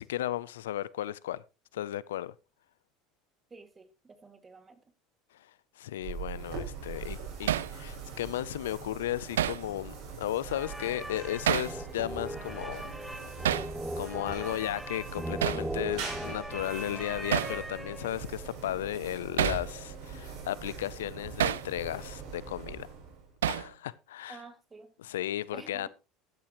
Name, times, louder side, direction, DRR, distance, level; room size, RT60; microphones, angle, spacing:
voice 1, 0.0-1.4 1.7-2.3 5.8-12.9 14.0-22.9 23.4-24.4 25.0-25.9, left 13 dB, 85° left, 0.5 m, -35 dB
voice 2, 3.5-4.8 24.3-24.9 25.5-25.9, right 4 dB, 25° right, 2.2 m, -50 dB
sound 1, 6.0-23.4, right 5 dB, 65° right, 7.0 m, -42 dB
Hammer, 7.5-7.7 9.4-9.6 11.5-11.8 13.4-13.7 15.4-15.7 17.3-17.6 19.4-19.7 21.4-21.7 23.4-23.7, right 11 dB, 85° right, 0.6 m, -28 dB
sound 2, 10.4-18.3, right 1 dB, 5° right, 1.2 m, -39 dB
13.5 x 12.5 x 3.0 m
hypercardioid pair, 85°, 0 cm